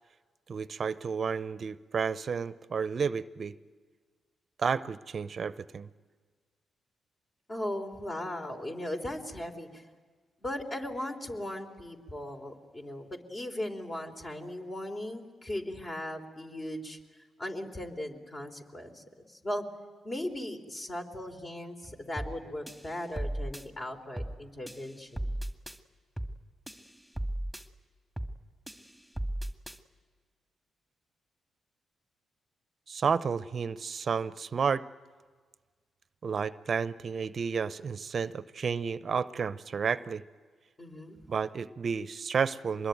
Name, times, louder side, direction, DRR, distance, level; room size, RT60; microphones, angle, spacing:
voice 1, 0.5-3.6 4.6-5.9 32.9-34.8 36.2-40.2 41.3-42.9, right 6 dB, 55° right, 15 dB, 0.7 m, -31 dB
voice 2, 7.5-9.9 10.4-17.0 17.4-19.7 20.0-25.3 40.8-41.2, left 1 dB, 35° left, 4 dB, 3.7 m, -38 dB
sound 1, 22.2-22.4 22.7-23.7 24.2-24.4 24.7-25.8 26.2-26.4 26.7-27.7 28.2-28.4 28.7-29.8, right 1 dB, ahead, 2.0 m, -36 dB
25.0 x 21.5 x 9.2 m, 1.5 s
supercardioid pair, 50°, 0 cm